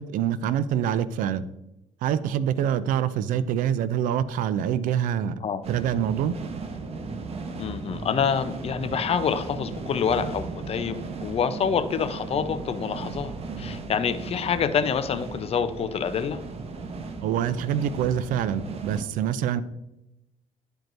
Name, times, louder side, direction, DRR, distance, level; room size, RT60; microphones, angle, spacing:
voice 1, 0.0-1.4 2.0-5.4 5.7-6.4 17.2-19.6, right 9 dB, 75° right, 15 dB, 0.5 m, -25 dB
sound 1, 5.6-19.0, right 4 dB, 45° right, 0.9 m, -36 dB
voice 2, 7.6-13.3 13.6-16.4, left 7 dB, 45° left, 10 dB, 0.7 m, -27 dB
11.5 x 4.6 x 2.6 m, 0.92 s
cardioid pair, 85°, 14 cm